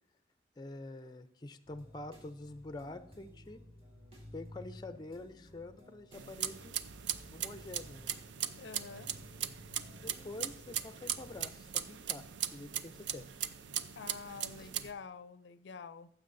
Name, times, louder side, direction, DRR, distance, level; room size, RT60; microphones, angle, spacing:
voice 1, 0.6-3.6 4.3-6.8 7.3-8.1 10.0-12.2 12.5-13.2 14.6-14.7, left 2 dB, 25° left, 0.4 m, -46 dB
sound 1, 1.6-11.4, left 1 dB, 35° right, 2.1 m, -55 dB
sound 2, 6.1-14.9, right 10 dB, 85° right, 0.5 m, -39 dB
voice 2, 8.6-9.1 13.9-16.1, left 5 dB, 80° left, 0.4 m, -47 dB
15.0 x 7.0 x 2.6 m
head